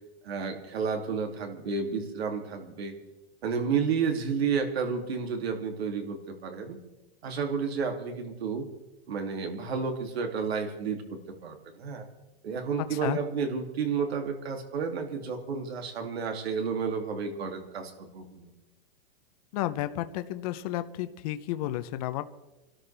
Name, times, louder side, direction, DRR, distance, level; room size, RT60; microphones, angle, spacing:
voice 1, 0.2-2.9 3.4-6.8 7.2-8.7 9.1-12.0 12.4-18.5, right 5 dB, 90° right, 4 dB, 2.8 m, -31 dB
voice 2, 12.8-13.2 19.5-22.2, left 14 dB, 40° left, 11 dB, 0.7 m, -32 dB
26.5 x 13.0 x 3.4 m, 1.0 s
supercardioid pair, 165°, 30 cm